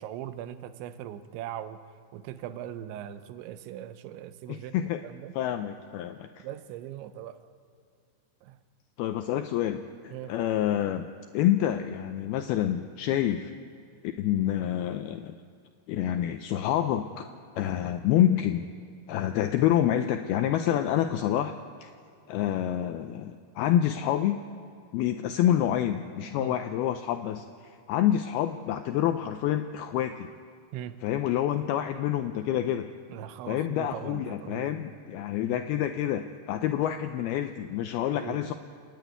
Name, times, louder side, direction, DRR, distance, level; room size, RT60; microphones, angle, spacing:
voice 1, 0.0-1.8 2.1-4.8 5.0-5.3 6.4-7.5 8.4-8.6 10.1-10.3 26.4-26.6 30.7-31.0 33.1-34.8 35.4-35.6 38.1-38.5, right 11 dB, 85° right, 12 dB, 3.2 m, -40 dB
voice 2, 4.5-5.0 5.4-6.4 9.0-11.1 11.3-13.5 14.2-15.3 15.9-17.3 17.6-18.7 19.1-21.5 21.8-21.9 22.3-24.4 24.9-30.3 31.0-32.9 33.5-38.5, left 11 dB, 90° left, 7 dB, 2.2 m, -27 dB
29.5 x 10.5 x 9.3 m, 2.3 s
omnidirectional pair, 5.2 m